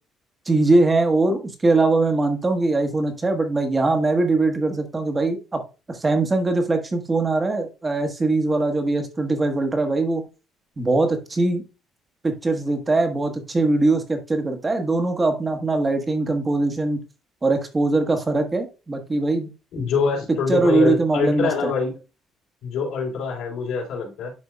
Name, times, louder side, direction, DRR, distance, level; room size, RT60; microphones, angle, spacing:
voice 1, 0.5-5.6 5.9-10.2 10.8-11.6 12.2-17.0 17.4-19.5 19.8-19.9 20.5-21.7, right 2 dB, 20° right, 6 dB, 1.3 m, -21 dB
voice 2, 19.7-21.9 22.6-24.3, left 5 dB, 80° left, -1 dB, 3.4 m, -24 dB
10.5 x 4.4 x 2.3 m, 0.30 s
cardioid pair, 145°, 0 cm